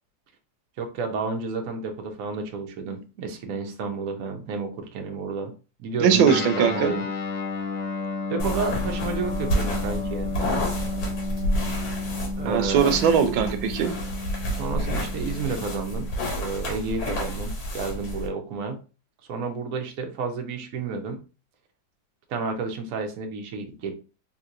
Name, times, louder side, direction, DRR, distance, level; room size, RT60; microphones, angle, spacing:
voice 1, 0.8-5.5 5.8-7.0 8.3-10.4 12.4-12.9 14.5-16.1 16.4-18.8 19.3-21.2 22.3-23.9, right 4 dB, 65° right, 3 dB, 0.9 m, -31 dB
voice 2, 6.0-6.9 12.4-13.9, right 8 dB, 90° right, 8 dB, 1.4 m, -20 dB
Guitar, 6.2-16.1, left 3 dB, 70° left, 0.8 m, -32 dB
sound 1, 8.4-18.3, equal, 90° left, 2.0 m, -30 dB
3.6 x 2.8 x 2.4 m, 0.33 s
omnidirectional pair, 2.1 m